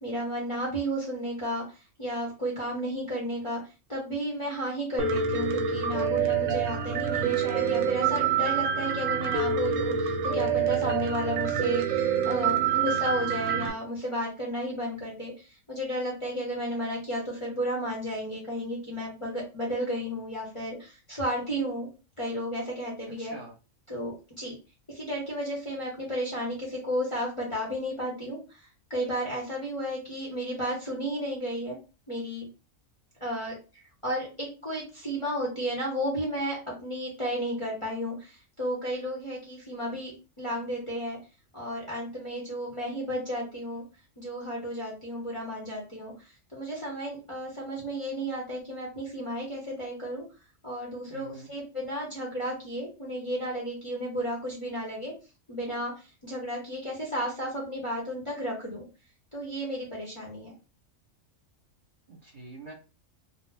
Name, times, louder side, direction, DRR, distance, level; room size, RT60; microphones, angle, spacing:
voice 1, 0.0-1.6 2.0-3.6 3.9-21.9 22.2-23.4 23.9-24.5 24.9-28.4 28.9-31.8 32.1-32.4 33.2-33.5 34.0-40.1 40.4-41.2 41.5-43.8 44.2-46.1 46.5-50.2 50.6-55.1 55.5-55.9 56.2-58.8 59.3-60.5, equal, 30° left, -2 dB, 0.8 m, -33 dB
Piano, 5.0-13.7, right 7 dB, 70° right, 0.9 m, -27 dB
voice 2, 23.2-23.5 51.1-51.5 62.1-62.7, right 2 dB, 40° right, -3 dB, 1.0 m, -45 dB
2.7 x 2.0 x 3.3 m, 0.31 s
omnidirectional pair, 1.4 m